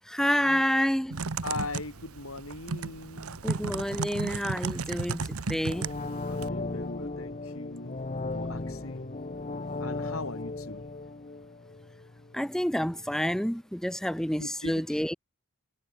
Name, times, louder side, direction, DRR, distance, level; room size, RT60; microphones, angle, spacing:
voice 1, 0.1-1.1 3.4-5.2 5.5-5.8 12.3-15.1, equal, ahead, 0.9 m, -28 dB
Typing, 1.1-6.5, right 4 dB, 90° right, 1.0 m, -34 dB
voice 2, 1.4-3.4 6.3-8.1 8.3-9.3 9.8-10.8 14.4-15.0, left 2 dB, 70° left, 5.2 m, -40 dB
sound 1, 5.6-12.5 12.8-12.9, left 2 dB, 35° left, 0.9 m, -36 dB
head